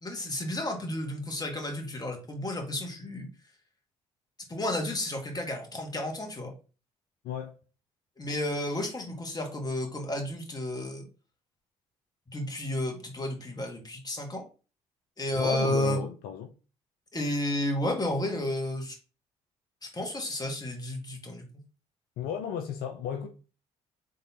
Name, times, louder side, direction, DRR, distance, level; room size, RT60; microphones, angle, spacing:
voice 1, 0.0-3.3 4.5-6.5 8.2-11.1 12.3-14.4 15.2-16.0 17.1-19.0 19.9-21.4, left 1 dB, 25° left, 1.7 m, -32 dB
voice 2, 7.2-7.6 15.3-16.5 22.2-23.3, left 8 dB, 70° left, 0.5 m, -34 dB
3.8 x 3.7 x 2.9 m
hypercardioid pair, 50°, 16 cm